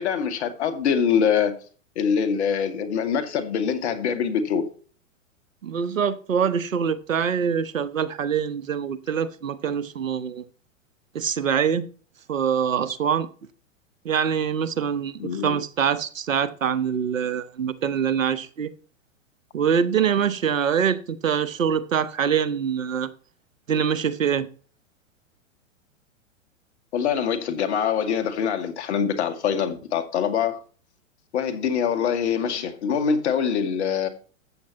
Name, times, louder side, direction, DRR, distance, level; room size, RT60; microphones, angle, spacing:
voice 1, 0.0-1.5 2.0-4.7 15.2-15.6 26.9-30.6 31.3-34.1, left 7 dB, 55° left, 2.1 m, -24 dB
voice 2, 5.6-10.4 11.1-11.8 12.3-13.3 14.0-18.7 19.5-23.1 23.7-24.5, right 7 dB, 75° right, 1.1 m, -24 dB
13.5 x 8.6 x 3.0 m
figure-of-eight pair, 105°, 39 cm